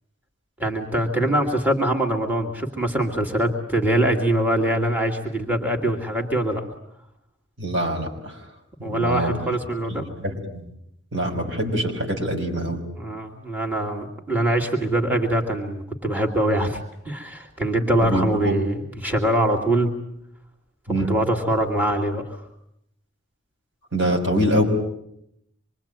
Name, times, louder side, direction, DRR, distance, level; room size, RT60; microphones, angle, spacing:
voice 1, 0.6-6.6 8.8-10.0 13.0-19.9 21.0-22.4, right 1 dB, 10° right, 3 dB, 2.5 m, -23 dB
voice 2, 7.6-8.4 8.9-9.4 10.0-10.6 11.1-12.8 18.0-18.5 20.9-21.1 23.9-24.6, equal, 75° right, 2 dB, 5.7 m, -24 dB
26.5 x 23.0 x 8.9 m, 0.76 s
head